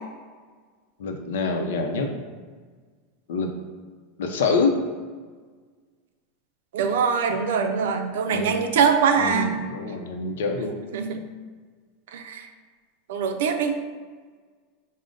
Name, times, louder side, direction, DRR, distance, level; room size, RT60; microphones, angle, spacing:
voice 1, 1.0-2.2 3.3-3.5 4.2-4.7 8.3-8.6 9.2-10.8, left 4 dB, 85° left, 4 dB, 0.6 m, -26 dB
voice 2, 6.7-9.6 10.9-11.2 12.1-12.5 13.1-13.8, right 6 dB, 75° right, 6 dB, 0.4 m, -23 dB
4.9 x 2.1 x 3.8 m, 1.5 s
supercardioid pair, 175°, 0 cm